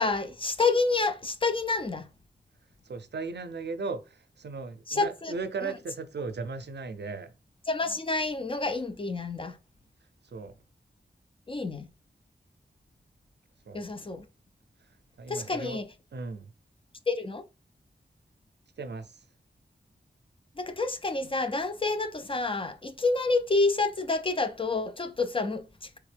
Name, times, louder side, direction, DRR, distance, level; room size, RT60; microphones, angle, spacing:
voice 1, 0.0-2.1 4.9-5.3 5.6-5.7 7.7-9.6 11.5-11.9 13.7-14.3 15.3-15.9 17.1-17.4 20.6-26.0, left 3 dB, 30° left, 0.4 m, -28 dB
voice 2, 2.8-7.3 10.2-10.6 13.7-13.8 15.2-15.8 16.1-16.5 18.8-19.2, right 4 dB, 70° right, 0.5 m, -37 dB
3.5 x 3.5 x 3.3 m
wide cardioid pair, 85°, 18 cm